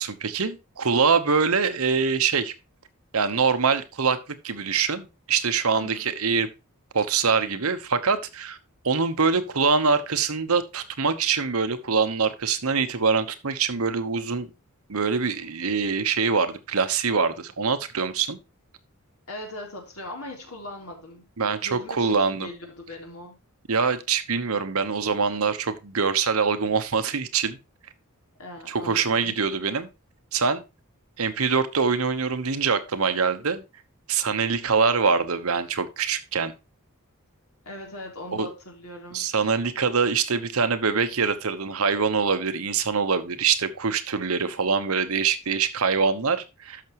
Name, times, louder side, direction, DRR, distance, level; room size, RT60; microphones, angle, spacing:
voice 1, 0.0-2.5 3.1-4.2 4.4-6.5 6.9-8.6 8.8-14.5 14.9-18.4 21.4-22.5 23.7-27.6 28.7-29.9 30.3-30.6 31.2-33.6 34.1-36.5 38.3-38.5 39.1-46.8, right 5 dB, 75° right, 1.0 m, -24 dB
voice 2, 5.7-6.1 19.3-21.2 21.6-23.3 28.4-29.4 37.6-39.3, left 1 dB, 80° left, 3.5 m, -39 dB
12.5 x 6.0 x 3.0 m
head